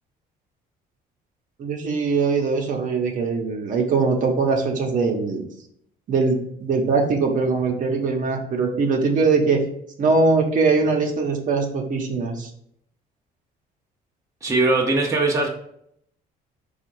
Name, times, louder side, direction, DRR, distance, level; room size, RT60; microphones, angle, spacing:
voice 1, 1.6-5.5 6.1-9.6 10.0-12.5, right 4 dB, 50° right, 2 dB, 0.9 m, -21 dB
voice 2, 14.4-15.5, right 2 dB, 20° right, -1 dB, 0.7 m, -20 dB
4.3 x 2.4 x 4.6 m, 0.70 s
cardioid pair, 110°, 17 cm